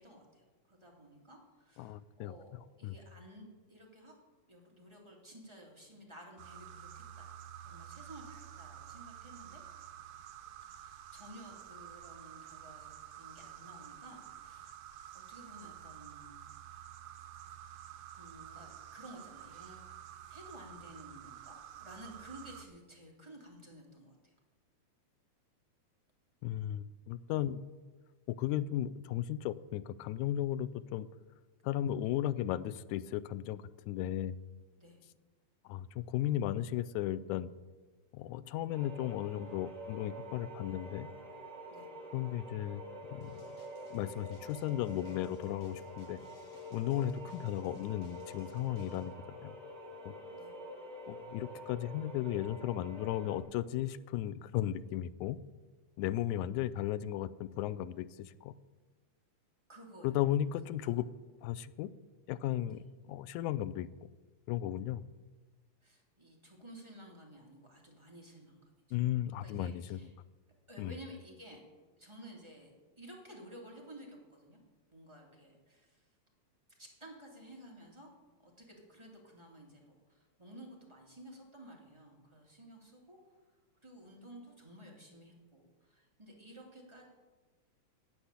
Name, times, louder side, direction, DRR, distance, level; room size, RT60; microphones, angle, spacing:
voice 1, 0.0-2.5 2.8-4.1 4.5-7.3 7.6-9.6 10.6-16.5 18.1-24.3 34.8-35.0 41.7-41.9 50.3-50.6 59.7-60.1 60.8-60.9 62.7-62.8 65.8-69.0 69.4-70.1 70.7-71.6 72.0-74.6 74.9-76.1 76.8-78.1 78.4-83.4 83.8-87.1, right 1 dB, 10° right, -2 dB, 2.1 m, -54 dB
voice 2, 1.8-2.3 2.8-3.0 26.4-27.6 28.3-31.1 31.6-34.4 35.7-37.5 38.1-41.1 42.1-42.8 43.1-43.5 43.9-46.2 46.7-49.6 50.0-50.2 51.1-55.4 56.0-58.5 60.0-61.1 61.4-61.9 62.3-63.9 64.5-65.0 68.9-70.0 70.8-71.0, left 12 dB, 90° left, 16 dB, 2.0 m, -35 dB
sound 1, 6.4-22.7, right 10 dB, 90° right, 1.1 m, -50 dB
sound 2, 38.7-53.4, equal, 35° right, 3.1 m, -47 dB
sound 3, 43.2-49.1, left 4 dB, 60° left, 2.5 m, -63 dB
10.0 x 8.8 x 8.2 m, 1.3 s
omnidirectional pair, 3.3 m